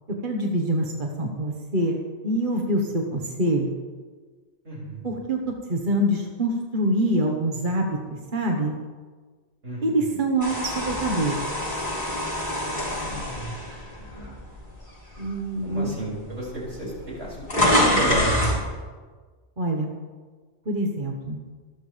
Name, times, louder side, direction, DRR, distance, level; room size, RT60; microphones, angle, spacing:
voice 1, 0.2-3.7 5.0-5.4 5.7-7.9 8.3-8.7 9.8-11.3 15.2-15.9 19.6-19.9 20.7-21.4, right 1 dB, 45° right, 1 dB, 1.5 m, -25 dB
voice 2, 4.6-5.0 9.6-10.1 12.5-13.1 15.6-16.9 17.2-17.4 17.7-18.3, right 1 dB, 80° right, -5 dB, 6.8 m, -32 dB
sound 1, 10.4-14.6 15.2-15.4 16.3-16.4 16.6-18.6, left 1 dB, 40° left, 5.1 m, -25 dB
26.0 x 12.5 x 3.4 m, 1.4 s
omnidirectional pair, 1.2 m